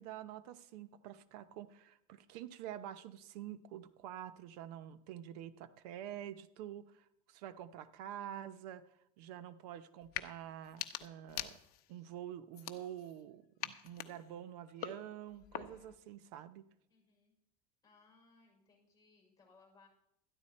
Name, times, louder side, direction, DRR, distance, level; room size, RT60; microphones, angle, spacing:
voice 1, 0.0-8.9 9.2-11.6 11.9-16.6, right 11 dB, 85° right, 12 dB, 0.8 m, -47 dB
sound 1, 10.0-10.3 10.6-12.0 12.5-13.2 13.6-16.0, left 13 dB, 50° left, 0.9 m, -45 dB
voice 2, 16.9-17.4 17.8-19.9, left 4 dB, 20° left, 0 dB, 5.4 m, -66 dB
13.0 x 11.0 x 4.3 m, 0.78 s
cardioid pair, 140°, 20 cm